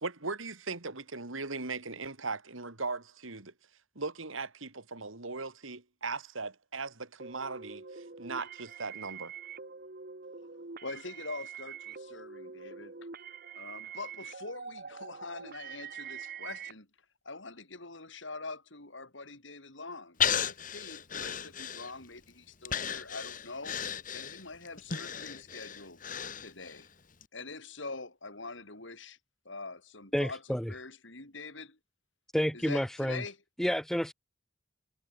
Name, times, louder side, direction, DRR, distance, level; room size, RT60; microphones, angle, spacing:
voice 1, 0.0-3.5 3.9-9.3, right 3 dB, 80° right, 2.8 m, -38 dB
sound 1, 7.2-16.7, right 6 dB, 45° right, 1.2 m, -45 dB
voice 2, 10.8-13.1 13.6-16.9 17.2-23.8 24.1-26.0 26.4-26.9 27.3-29.2 29.4-31.8 32.5-33.4, left 3 dB, 65° left, 4.7 m, -44 dB
Breathing, 20.2-22.2 22.7-26.8 27.2-27.3, left 8 dB, 40° left, 1.9 m, -34 dB
voice 3, 30.1-30.7 32.3-33.2 33.6-34.1, equal, ahead, 0.5 m, -29 dB
head